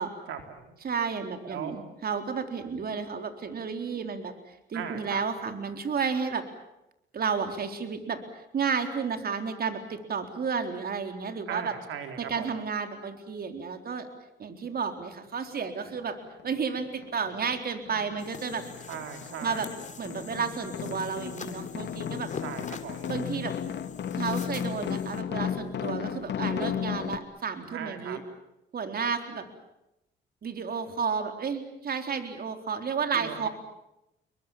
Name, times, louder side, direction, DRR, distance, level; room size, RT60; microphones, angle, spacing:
voice 1, 0.3-0.7 1.4-1.8 4.7-5.2 11.5-12.5 18.9-19.7 22.4-23.1 27.7-28.2 33.1-33.5, right 8 dB, 80° right, 6 dB, 3.9 m, -38 dB
voice 2, 0.8-6.4 7.1-11.7 12.2-14.1 14.4-16.2 16.4-18.7 19.4-19.7 20.0-22.3 23.1-23.5 24.1-28.2 28.7-29.4 30.4-33.5, right 6 dB, 50° right, 7 dB, 4.0 m, -32 dB
sound 1, 16.0-16.1 16.4-17.6 17.9-27.2, left 8 dB, 60° left, 1.9 m, -34 dB
sound 2, 18.2-25.2, left 5 dB, 40° left, 3.2 m, -45 dB
29.5 x 23.5 x 7.4 m, 0.86 s
cardioid pair, 90°, 20 cm